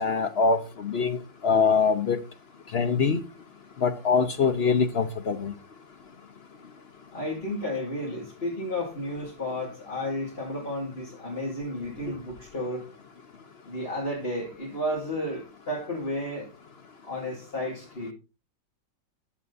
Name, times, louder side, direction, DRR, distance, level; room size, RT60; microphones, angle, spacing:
voice 1, 0.0-2.2 2.7-3.2 3.8-5.5, left 5 dB, 65° left, 0.6 m, -24 dB
voice 2, 7.1-12.8 13.7-16.5 17.0-18.1, left 1 dB, 30° left, 2.9 m, -32 dB
10.0 x 8.1 x 4.0 m
omnidirectional pair, 2.1 m